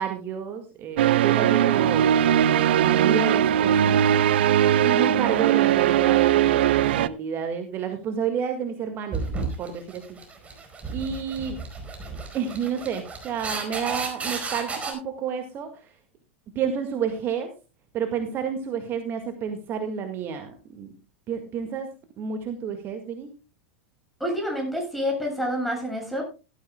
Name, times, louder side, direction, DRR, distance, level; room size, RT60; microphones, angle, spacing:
voice 1, 0.0-4.0 4.8-10.2 10.9-11.6 12.3-15.9 16.6-17.5 17.9-20.9 21.3-23.3, right 7 dB, 35° right, 6 dB, 1.8 m, -30 dB
sound 1, 1.0-7.1, right 10 dB, 65° right, 0.6 m, -20 dB
sound 2, 9.1-14.9, right 4 dB, 20° right, 4.6 m, -33 dB
voice 2, 24.2-26.2, equal, ahead, 1 dB, 7.2 m, -28 dB
17.0 x 13.0 x 2.2 m, 0.31 s
figure-of-eight pair, 90°, 6 cm